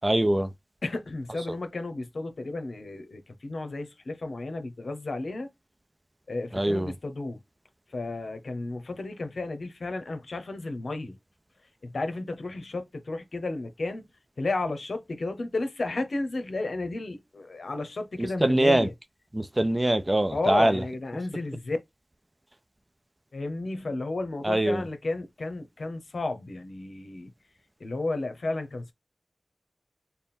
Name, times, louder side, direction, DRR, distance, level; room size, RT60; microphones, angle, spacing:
voice 1, 0.0-0.5 6.5-6.9 18.2-18.9 19.3-20.8 24.4-24.8, right 1 dB, 25° right, 0.5 m, -23 dB
voice 2, 0.8-5.5 6.3-7.4 7.9-11.2 11.8-14.0 14.4-18.9 20.3-21.8 23.3-27.3 27.8-28.9, left 2 dB, 75° left, 0.8 m, -33 dB
3.5 x 2.1 x 4.2 m
wide cardioid pair, 60°, 0 cm